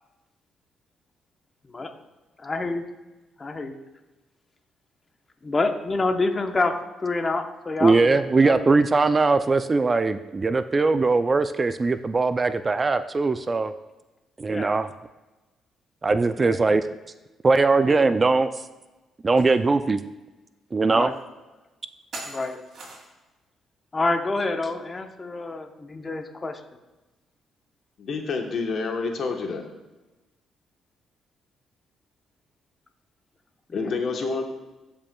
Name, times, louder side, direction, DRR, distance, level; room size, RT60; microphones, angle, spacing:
voice 1, 2.4-2.8 3.4-3.8 5.4-8.7 14.5-14.7 16.4-16.8 17.9-18.1 20.9-21.2 22.3-22.6 23.9-26.6 33.8-34.0, left 3 dB, 30° left, 6 dB, 0.8 m, -28 dB
voice 2, 7.8-13.7 14.4-14.9 16.0-16.8 17.4-18.5 19.2-20.0 20.7-21.1, right 3 dB, 30° right, 11 dB, 0.3 m, -20 dB
sound 1, 19.4-19.5 20.0-20.1 21.1-21.2 22.1-23.3, right 2 dB, 60° right, 2.6 m, -40 dB
voice 3, 28.0-29.7 33.7-34.4, left 4 dB, 55° left, 3 dB, 1.0 m, -28 dB
14.5 x 5.3 x 2.2 m, 1.1 s
cardioid pair, 90°, 0 cm